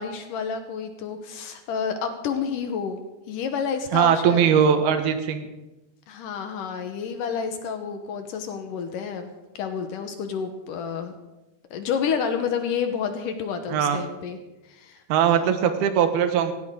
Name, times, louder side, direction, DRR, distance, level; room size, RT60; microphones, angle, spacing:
voice 1, 0.0-3.0 3.3-4.4 6.1-9.3 9.6-11.1 11.7-14.4 14.7-15.0 15.3-15.5, left 6 dB, 70° left, 7 dB, 2.4 m, -29 dB
voice 2, 3.9-5.5 13.7-14.0 15.1-16.5, right 8 dB, 85° right, 8 dB, 3.1 m, -20 dB
17.5 x 16.0 x 3.8 m, 1.0 s
omnidirectional pair, 4.4 m